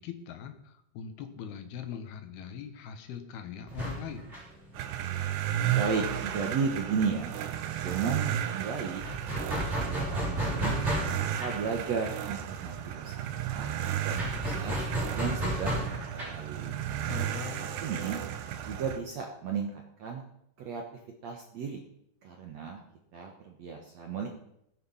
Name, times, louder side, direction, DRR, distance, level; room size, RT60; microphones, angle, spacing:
voice 1, 0.0-4.3 17.1-17.7, left 8 dB, 75° left, 7 dB, 3.2 m, -41 dB
sound 1, 3.7-7.1 7.3-7.5 7.7-18.7, right 1 dB, 15° right, 6.2 m, -35 dB
sound 2, 4.8-19.0, right 11 dB, 90° right, 3.2 m, -34 dB
voice 2, 5.7-7.4 7.8-9.0 9.3-10.8 11.4-13.7 14.0-14.9 15.1-16.8 17.6-18.2 18.6-20.2 20.6-20.8 21.2-21.8 22.2-22.8 23.1-24.3, right 5 dB, 65° right, 2 dB, 1.8 m, -34 dB
19.0 x 9.4 x 5.6 m, 0.77 s
omnidirectional pair, 4.6 m